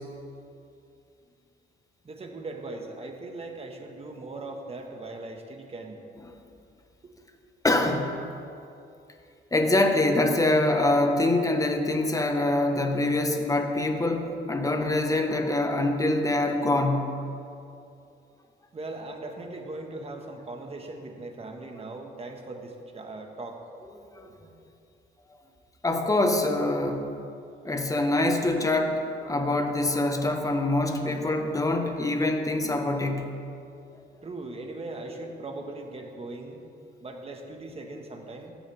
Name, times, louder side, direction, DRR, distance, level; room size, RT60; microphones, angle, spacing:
voice 1, 2.0-6.0 7.0-7.1 18.7-23.6 24.2-24.3 34.2-36.6 37.0-38.5, right 2 dB, 30° right, 3 dB, 1.5 m, -39 dB
voice 2, 7.6-8.1 9.5-17.1 24.1-24.3 25.8-27.1 27.6-33.3, left 2 dB, 15° left, 5 dB, 1.2 m, -24 dB
15.0 x 10.5 x 3.5 m, 2.6 s
cardioid pair, 90°, 20 cm